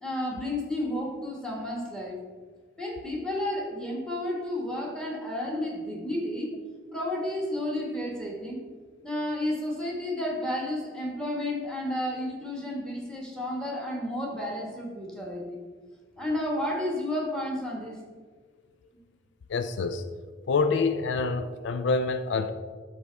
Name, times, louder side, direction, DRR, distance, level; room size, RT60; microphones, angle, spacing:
voice 1, 0.0-2.2 2.8-6.5 6.9-8.6 9.0-15.6 16.2-18.0, left 1 dB, 5° left, -2 dB, 1.5 m, -31 dB
voice 2, 19.5-20.0 20.5-22.5, left 4 dB, 75° left, 9 dB, 0.4 m, -26 dB
12.0 x 4.2 x 3.4 m, 1.5 s
head